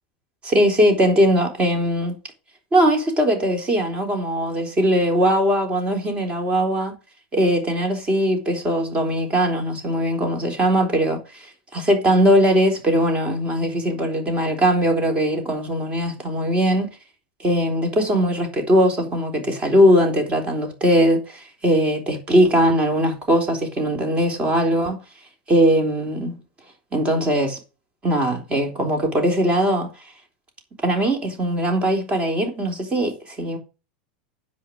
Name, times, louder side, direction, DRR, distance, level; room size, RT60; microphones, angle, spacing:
voice 1, 0.4-2.1 2.7-7.0 7.3-11.5 11.7-16.9 17.4-25.0 25.5-26.4 26.9-27.6 28.0-29.9 30.8-33.6, equal, 25° right, 3.8 m, -20 dB
10.0 x 5.2 x 6.4 m
supercardioid pair, 125°, 5 cm